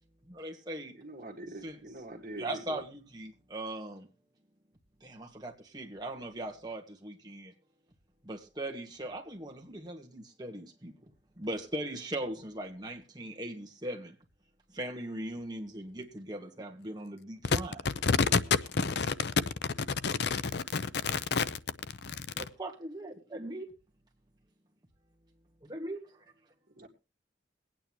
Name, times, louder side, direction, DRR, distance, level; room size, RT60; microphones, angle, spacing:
voice 1, 0.2-1.0 1.6-1.8 2.4-4.1 5.0-7.5 8.2-10.9 11.4-14.1 14.7-17.8 22.4-23.7 25.6-26.0, right 1 dB, 20° right, 1.8 m, -39 dB
voice 2, 0.9-2.8 26.8-26.9, right 1 dB, 50° right, 2.0 m, -44 dB
voice 3, 17.8-18.4 18.7-19.3 20.0-22.4, left 5 dB, 65° left, 0.6 m, -30 dB
22.0 x 9.0 x 3.1 m
head